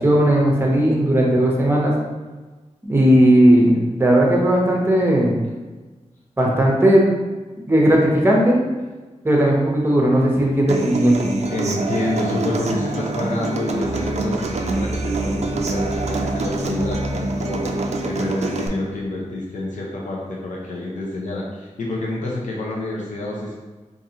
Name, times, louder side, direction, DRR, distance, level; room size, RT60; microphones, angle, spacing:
voice 1, 0.0-1.9 2.8-5.3 6.4-7.1 7.7-8.6 9.2-11.3, right 1 dB, 20° right, -2 dB, 0.7 m, -16 dB
Human voice / Acoustic guitar, 10.7-18.7, right 3 dB, 60° right, 0.4 m, -26 dB
voice 2, 11.5-23.5, left 2 dB, 80° left, -4 dB, 0.6 m, -28 dB
sound 1, 13.8-19.1, equal, 60° left, 1.3 m, -31 dB
3.9 x 2.6 x 2.8 m, 1.3 s
wide cardioid pair, 125°, 13 cm